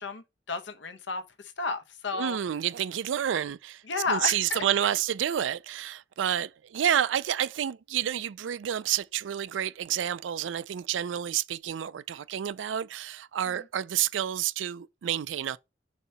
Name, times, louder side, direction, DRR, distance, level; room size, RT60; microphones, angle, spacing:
voice 1, 0.0-2.4 3.9-4.7 13.5-13.6, left 4 dB, 75° left, 0.9 m, -33 dB
voice 2, 2.1-3.8 4.1-15.6, right 10 dB, 85° right, 0.4 m, -29 dB
6.7 x 2.8 x 5.6 m
head